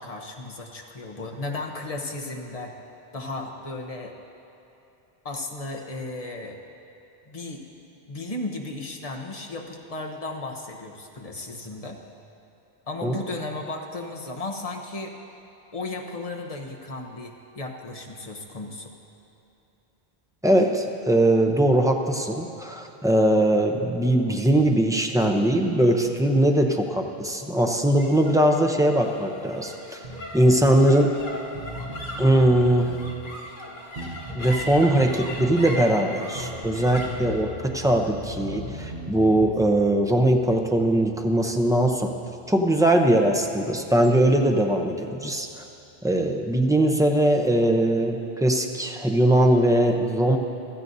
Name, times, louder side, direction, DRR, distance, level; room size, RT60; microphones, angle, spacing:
voice 1, 0.0-2.7 3.1-4.2 5.2-6.6 7.3-7.6 8.1-12.0 12.9-15.1 15.7-18.9, left 2 dB, 35° left, 1 dB, 1.0 m, -35 dB
voice 2, 20.4-30.0 30.3-31.1 32.2-32.9 34.3-42.1 42.5-45.5 46.0-50.4, right 1 dB, 5° right, 2 dB, 0.5 m, -21 dB
sound 1, 28.0-44.5, left 1 dB, 50° left, 1.8 m, -40 dB
Bass guitar, 30.0-30.7 31.2-31.3 31.5-33.2 34.0-35.6 36.3-37.5 37.8-39.6, right 2 dB, 60° right, 1.2 m, -38 dB
16.0 x 13.5 x 2.7 m, 2.9 s
omnidirectional pair, 1.0 m